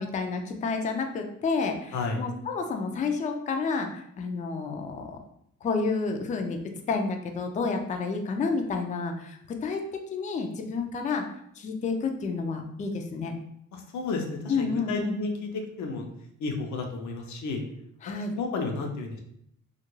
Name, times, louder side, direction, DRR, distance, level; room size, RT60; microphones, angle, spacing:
voice 1, 0.0-5.2 5.6-6.6 6.9-9.8 10.1-11.2 11.6-13.3 14.5-15.2 18.0-18.3, left 4 dB, 25° left, 4 dB, 0.3 m, -30 dB
voice 2, 1.9-2.2 13.7-16.1 16.4-17.6 18.3-19.2, left 3 dB, 70° left, 3 dB, 0.6 m, -32 dB
2.4 x 2.1 x 3.0 m, 0.71 s
cardioid pair, 90°, 30 cm